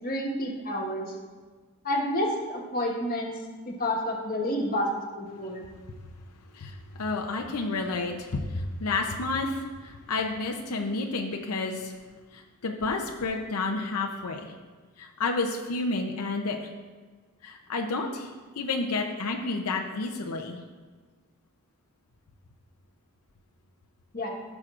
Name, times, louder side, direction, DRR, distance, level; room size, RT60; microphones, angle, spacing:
voice 1, 0.0-1.1 1.8-3.3 3.7-4.9 5.2-5.6 24.1-24.3, left 1 dB, 40° left, -1 dB, 1.4 m, -29 dB
voice 2, 6.5-12.0 12.3-14.5 15.0-16.6 17.4-20.6, left 3 dB, 90° left, 2 dB, 0.7 m, -30 dB
14.5 x 6.3 x 2.5 m, 1.4 s
head